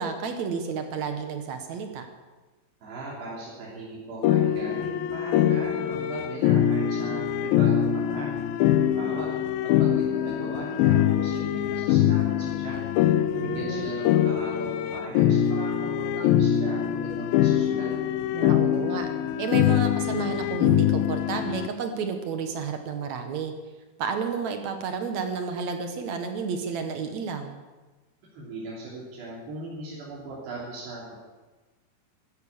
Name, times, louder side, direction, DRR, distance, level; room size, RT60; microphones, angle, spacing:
voice 1, 0.0-2.1 13.3-13.9 18.3-19.1 19.4-23.5 24.0-27.6, right 5 dB, 60° right, 6 dB, 2.0 m, -31 dB
voice 2, 2.8-8.4 8.7-9.3 9.6-12.8 13.4-17.9 28.3-31.2, right 2 dB, 85° right, -5 dB, 5.1 m, -38 dB
sound 1, 4.2-21.7, left 11 dB, 80° left, 2.2 m, -23 dB
14.5 x 13.5 x 7.2 m, 1.2 s
omnidirectional pair, 4.7 m